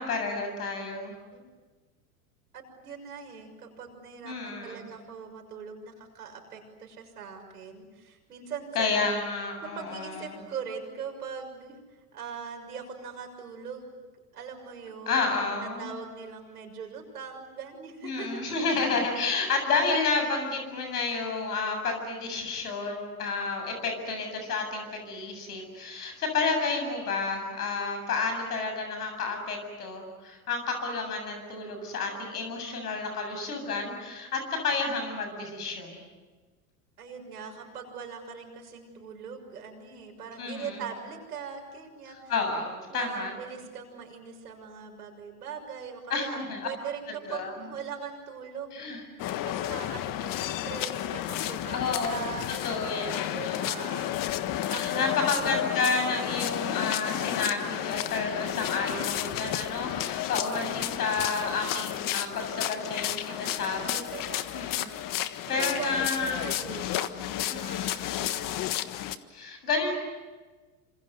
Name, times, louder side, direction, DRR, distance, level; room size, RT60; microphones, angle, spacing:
voice 1, 0.0-1.1 4.2-4.9 8.7-10.4 15.1-15.9 18.0-36.1 40.4-40.8 42.3-43.3 46.1-46.7 47.3-47.5 48.7-49.0 51.7-52.2 52.6-54.0 54.6-64.0 64.3-64.9 65.5-66.5 67.5-68.1 69.3-70.0, left 4 dB, 85° left, 5 dB, 7.7 m, -30 dB
voice 2, 2.5-9.1 9.7-14.0 14.3-18.3 37.0-42.2 42.9-49.0 49.4-52.6 53.3-54.2 54.7-55.1 63.3-64.6 65.6-68.4, right 6 dB, 90° right, 3 dB, 6.5 m, -41 dB
sound 1, 49.2-69.2, left 12 dB, 45° left, 1.5 m, -32 dB
27.5 x 26.5 x 8.0 m, 1.3 s
hypercardioid pair, 95°, 45 cm